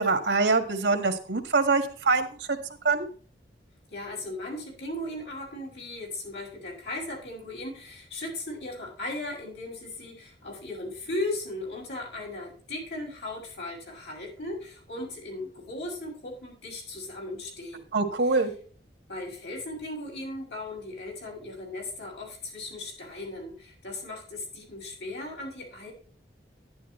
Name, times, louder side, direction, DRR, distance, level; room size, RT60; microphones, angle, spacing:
voice 1, 0.0-2.6 2.8-3.1 17.9-18.5, right 3 dB, 85° right, 7 dB, 1.7 m, -24 dB
voice 2, 3.9-17.9 19.1-25.9, left 2 dB, 75° left, -1 dB, 6.5 m, -37 dB
12.0 x 11.0 x 3.3 m, 0.42 s
head